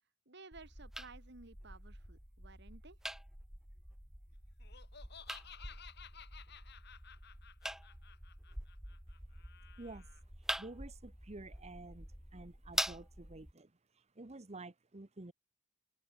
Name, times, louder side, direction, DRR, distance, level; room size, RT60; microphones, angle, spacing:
voice 1, 0.3-3.0, right 3 dB, 60° right, 2.7 m, -56 dB
sound 1, 0.5-13.5, right 1 dB, ahead, 0.4 m, -45 dB
Laughter, 4.6-10.2, left 8 dB, 60° left, 3.6 m, -56 dB
voice 2, 9.8-15.3, right 2 dB, 35° right, 1.1 m, -51 dB
open air
head